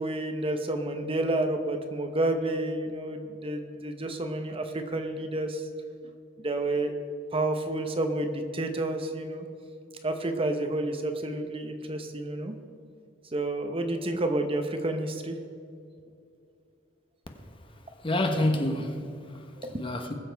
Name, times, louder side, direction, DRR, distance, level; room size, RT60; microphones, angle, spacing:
voice 1, 0.0-5.7 6.4-9.5 10.0-12.5 13.3-15.4 19.6-19.8, right 1 dB, 30° right, 0.9 m, -30 dB
voice 2, 18.0-19.5 19.8-20.1, left 1 dB, 30° left, 1.1 m, -28 dB
20.5 x 7.0 x 4.6 m
head